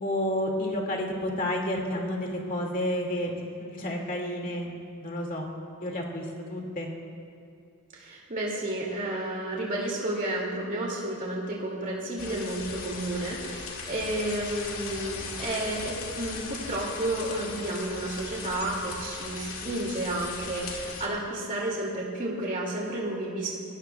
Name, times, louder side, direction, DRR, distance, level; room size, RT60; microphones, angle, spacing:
voice 1, 0.0-3.3 3.6-4.7 5.0-5.5 5.8-6.9, left 1 dB, 40° left, 0 dB, 2.2 m, -30 dB
voice 2, 7.9-23.5, right 1 dB, 35° right, -3 dB, 2.3 m, -31 dB
sound 1, 12.2-21.1, left 4 dB, 85° left, 2.1 m, -38 dB
27.0 x 16.5 x 2.3 m, 2.5 s
head